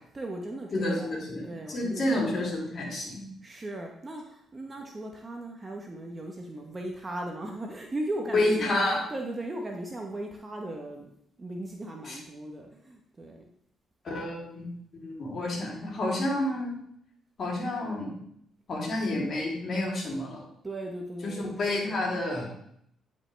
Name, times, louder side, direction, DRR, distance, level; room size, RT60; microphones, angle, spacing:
voice 1, 0.1-2.5 3.4-8.7 9.1-11.1 11.4-13.4 20.6-22.0, right 1 dB, 25° right, 1 dB, 1.0 m, -38 dB
voice 2, 0.7-1.4 1.7-3.2 8.3-9.0 12.0-12.2 14.0-14.7 15.0-16.8 17.4-18.1 18.7-20.4 21.2-22.5, left 1 dB, 50° left, -3 dB, 3.0 m, -29 dB
9.3 x 5.3 x 3.3 m, 0.71 s
cardioid pair, 90°, 0 cm